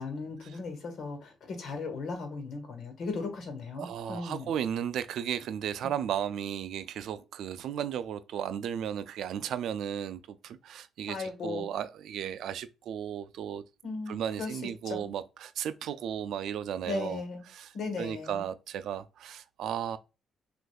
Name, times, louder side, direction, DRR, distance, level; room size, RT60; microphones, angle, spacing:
voice 1, 0.0-4.5 5.8-5.9 11.1-11.7 13.8-14.5 14.9-15.1 16.8-17.5 17.7-18.4, left 3 dB, 65° left, 1.3 m, -37 dB
voice 2, 3.8-13.6 14.1-17.2 17.5-20.0, right 9 dB, 75° right, 0.3 m, -35 dB
6.2 x 2.5 x 2.3 m
cardioid pair, 90°, 0 cm